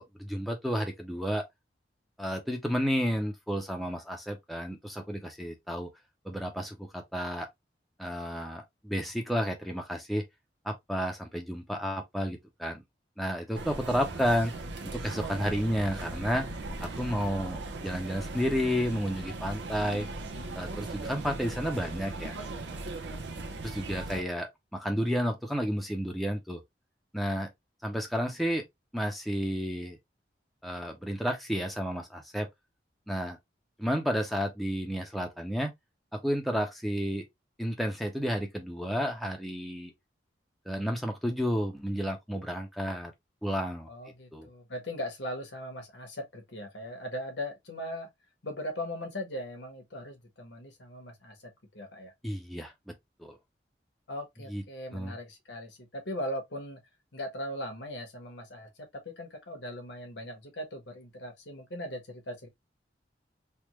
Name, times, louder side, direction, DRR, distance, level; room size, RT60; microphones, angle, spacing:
voice 1, 0.0-1.4 2.2-5.9 6.2-7.5 8.0-10.3 10.6-12.8 13.2-14.5 14.9-16.5 16.8-20.1 20.5-22.4 23.6-26.6 27.1-27.5 27.8-28.6 28.9-30.0 30.6-32.5 33.1-33.4 33.8-35.7 36.1-37.3 37.6-39.9 40.7-43.1 43.4-43.9 44.3-44.5 52.2-52.9 53.2-53.4 54.5-54.6 54.9-55.2, equal, ahead, 0.6 m, -31 dB
sound 1, 13.5-24.2, right 2 dB, 90° right, 0.7 m, -38 dB
voice 2, 43.9-48.1 48.4-51.4 51.7-52.1 54.1-56.8 57.1-62.5, left 1 dB, 90° left, 1.2 m, -39 dB
3.4 x 2.3 x 3.0 m
head